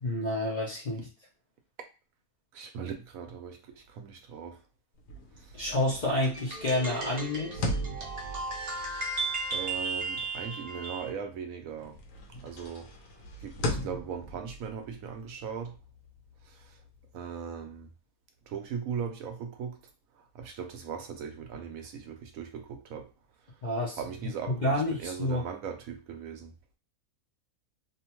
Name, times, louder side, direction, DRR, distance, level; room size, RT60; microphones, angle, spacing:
voice 1, 0.0-1.1 5.5-7.7 23.6-25.4, left 1 dB, 45° left, 0.6 m, -29 dB
voice 2, 2.5-4.6 9.5-12.0 12.4-12.9 13.4-15.7 17.1-17.9 18.5-19.8 20.3-23.1 24.0-26.5, right 7 dB, 75° right, 1.0 m, -38 dB
sound 1, 5.0-11.4 11.8-17.2, left 1 dB, 70° left, 1.1 m, -39 dB
sound 2, 6.3-11.1, right 3 dB, 60° right, 0.4 m, -35 dB
2.8 x 2.1 x 2.9 m
omnidirectional pair, 1.5 m